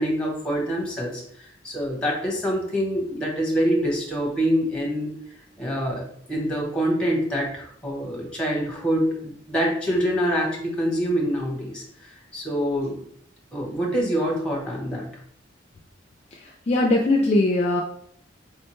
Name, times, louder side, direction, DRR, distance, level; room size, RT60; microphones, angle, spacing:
voice 1, 0.0-5.1 5.6-13.0 13.5-15.1, equal, 5° left, -2 dB, 0.8 m, -25 dB
voice 2, 16.4-17.8, left 2 dB, 35° left, 0 dB, 0.3 m, -21 dB
4.7 x 2.1 x 3.0 m, 0.66 s
head